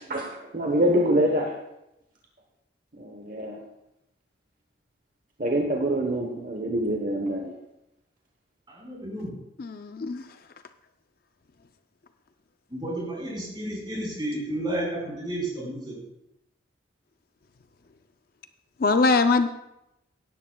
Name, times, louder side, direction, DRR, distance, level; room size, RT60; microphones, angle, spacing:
voice 1, 0.0-1.5 3.0-3.6 5.4-7.5, right 1 dB, 45° right, 1 dB, 1.0 m, -25 dB
voice 2, 8.7-9.3 12.7-16.0, right 1 dB, 25° right, -4 dB, 4.7 m, -32 dB
voice 3, 9.6-10.2 18.8-19.5, left 3 dB, 50° left, 9 dB, 0.4 m, -22 dB
17.0 x 11.0 x 2.3 m, 0.88 s
head